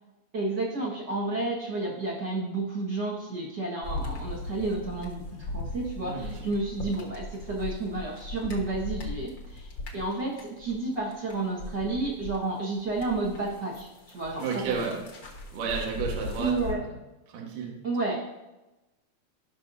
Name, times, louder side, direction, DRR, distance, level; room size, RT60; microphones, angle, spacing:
voice 1, 0.3-13.9 14.1-14.9 16.4-16.8 17.8-18.1, right 2 dB, 50° right, -5 dB, 1.3 m, -31 dB
sound 1, 3.8-12.4 12.8-16.7, left 1 dB, 75° left, 1.0 m, -38 dB
voice 2, 14.4-15.0 15.5-16.7 17.3-17.7, right 5 dB, 65° right, -1 dB, 2.9 m, -32 dB
17.0 x 6.0 x 2.7 m, 1.0 s
omnidirectional pair, 4.2 m